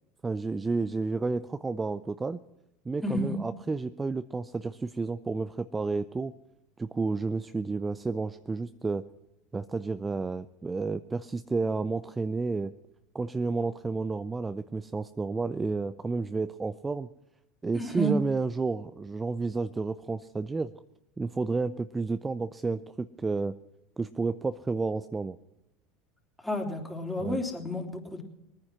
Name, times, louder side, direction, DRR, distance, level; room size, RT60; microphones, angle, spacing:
voice 1, 0.2-2.4 2.9-6.3 6.8-9.0 9.5-12.7 13.1-17.1 17.6-20.7 21.2-23.5 24.0-25.4 27.2-27.4, right 3 dB, 20° right, 12 dB, 0.5 m, -31 dB
voice 2, 3.0-3.3 17.7-18.1 26.4-28.2, equal, 10° left, 1 dB, 3.3 m, -31 dB
20.5 x 9.7 x 6.1 m, 0.91 s
hypercardioid pair, 80°, 0 cm